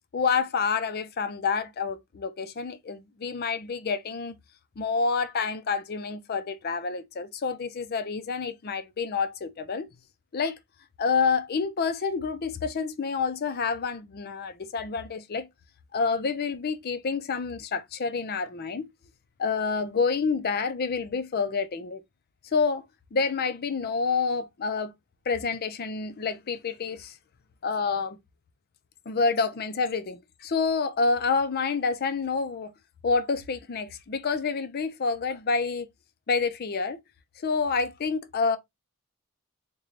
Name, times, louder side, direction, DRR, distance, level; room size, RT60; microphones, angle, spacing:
voice 1, 0.1-4.4 4.8-9.9 10.3-10.6 11.0-15.5 15.9-18.9 19.4-22.0 22.5-22.9 23.1-24.9 25.3-27.1 27.6-28.2 29.1-32.7 33.0-35.9 36.3-37.0 37.4-38.6, left 5 dB, 45° left, 0.5 m, -28 dB
3.8 x 2.2 x 3.1 m
head